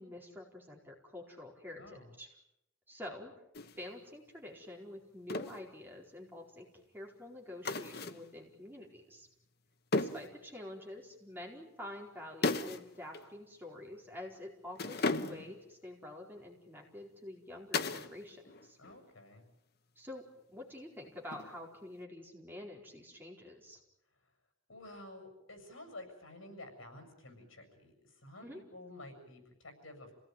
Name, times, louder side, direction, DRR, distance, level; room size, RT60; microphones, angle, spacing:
voice 1, 0.0-2.3 2.9-3.4 3.8-9.3 9.9-18.8 19.9-20.2 20.5-23.8 28.4-28.6, left 1 dB, 10° right, -1 dB, 4.6 m, -48 dB
voice 2, 1.8-2.1 18.8-19.4 24.7-30.1, left 2 dB, 75° left, 6 dB, 7.5 m, -51 dB
sound 1, 3.5-3.8 5.3-5.6 7.6-8.3 9.9-10.3 12.4-12.9 13.1-13.3 14.8-15.6 17.7-18.2 18.4-19.0 21.3-21.8, left 3 dB, 50° left, 1.1 m, -35 dB
28.0 x 18.0 x 9.3 m, 0.84 s
head